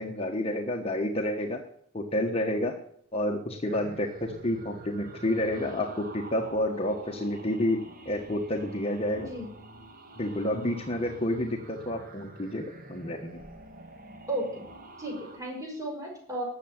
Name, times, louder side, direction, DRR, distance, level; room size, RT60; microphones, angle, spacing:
voice 1, 0.0-1.6 1.9-2.7 3.1-9.3 10.2-12.6 12.9-13.4, left 1 dB, 30° left, 2 dB, 1.3 m, -29 dB
sound 1, 3.6-15.4, right 2 dB, 40° right, 1.8 m, -46 dB
voice 2, 9.1-9.5 10.5-10.8 14.3-14.7 15.0-16.4, right 1 dB, 15° right, -1 dB, 5.6 m, -35 dB
13.5 x 7.7 x 8.8 m, 0.65 s
head